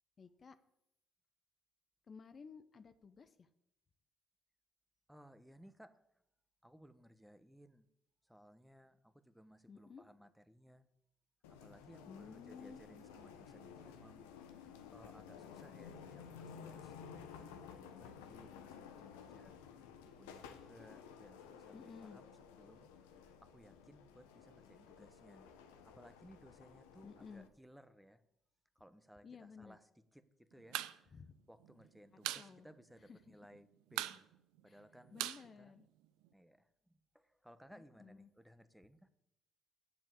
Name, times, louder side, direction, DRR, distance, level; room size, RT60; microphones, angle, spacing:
voice 1, 0.2-0.6 2.1-3.5 9.7-10.0 12.1-12.8 21.7-22.2 27.0-27.5 29.2-29.8 31.1-31.3 32.1-32.7 33.0-33.4 34.7-35.9 37.7-38.3, left 5 dB, 45° left, 11 dB, 0.7 m, -55 dB
voice 2, 5.1-5.9 6.6-7.8 8.3-10.8 11.5-14.3 14.9-19.6 20.0-22.2 22.6-22.9 23.4-25.5 25.8-28.2 28.8-29.8 30.1-30.8 31.5-34.3 34.6-35.3 35.6-35.7 36.3-36.6 37.4-39.1, equal, 5° right, 11 dB, 1.0 m, -61 dB
sound 1, 11.4-27.5, left 7 dB, 85° left, 0.9 m, -54 dB
sound 2, 30.6-31.0 31.2-31.3 31.6-32.5 32.8-32.9 33.2-33.6 33.9-36.3, right 14 dB, 75° right, 0.5 m, -41 dB
7.4 x 7.3 x 8.3 m, 0.81 s
hypercardioid pair, 55°, 0 cm